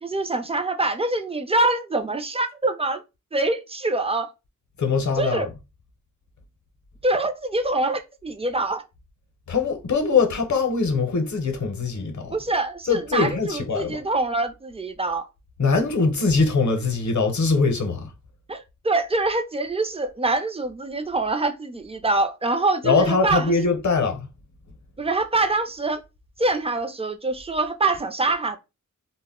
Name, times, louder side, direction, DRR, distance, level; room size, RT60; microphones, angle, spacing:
voice 1, 0.0-3.0 3.3-4.3 5.2-5.5 7.0-8.8 12.3-15.3 18.5-23.6 25.0-26.0 26.4-28.6, right 2 dB, 20° right, 0.3 m, -25 dB
voice 2, 4.8-5.5 9.5-12.4 12.9-14.0 15.6-18.1 22.8-24.3, left 4 dB, 65° left, 0.7 m, -22 dB
2.1 x 2.1 x 3.5 m
wide cardioid pair, 85°, 32 cm